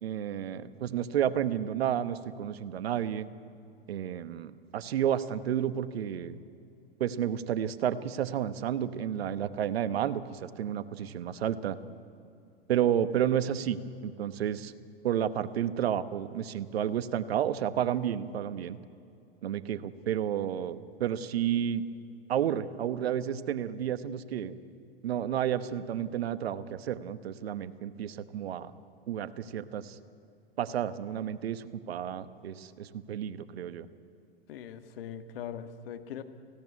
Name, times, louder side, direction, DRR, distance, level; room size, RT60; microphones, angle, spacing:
voice 1, 0.0-3.3 3.9-6.4 7.0-11.8 12.7-14.7 15.0-18.8 19.4-21.8 22.3-24.5 25.0-28.7 29.1-30.0 30.6-33.9, right 10 dB, 70° right, 13 dB, 1.1 m, -31 dB
voice 2, 34.5-36.2, left 9 dB, 65° left, 8 dB, 1.6 m, -41 dB
17.5 x 16.5 x 9.6 m, 2.5 s
hypercardioid pair, 105°, 31 cm